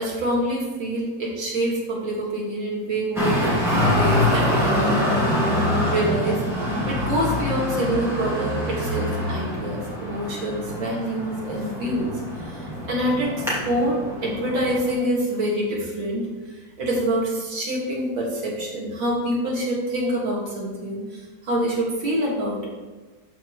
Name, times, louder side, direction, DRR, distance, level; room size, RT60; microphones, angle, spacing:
voice 1, 0.0-3.4 3.8-5.3 5.9-12.1 12.4-16.2 16.8-22.7, right 1 dB, 85° right, -4 dB, 2.8 m, -26 dB
Traffic noise roadway noise, 3.2-14.9, left 1 dB, ahead, 2.4 m, -25 dB
12.5 x 4.9 x 3.1 m, 1.3 s
omnidirectional pair, 2.0 m